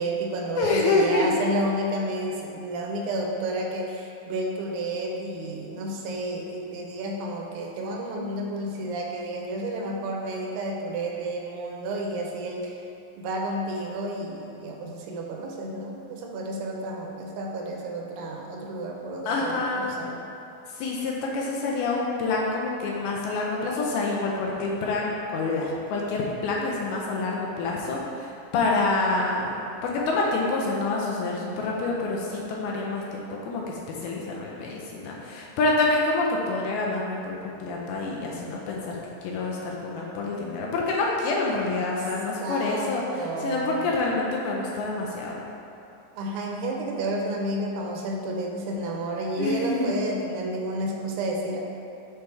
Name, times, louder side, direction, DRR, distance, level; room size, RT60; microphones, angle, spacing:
voice 1, 0.0-12.8 13.2-20.2 42.4-43.9 46.1-51.6, right 1 dB, 80° right, 0 dB, 2.6 m, -31 dB
voice 2, 0.6-1.5 19.3-20.0 20.8-39.0 39.2-45.4 49.4-50.0, left 3 dB, 80° left, -3 dB, 2.4 m, -27 dB
6.8 x 4.5 x 3.3 m, 2.7 s
omnidirectional pair, 4.7 m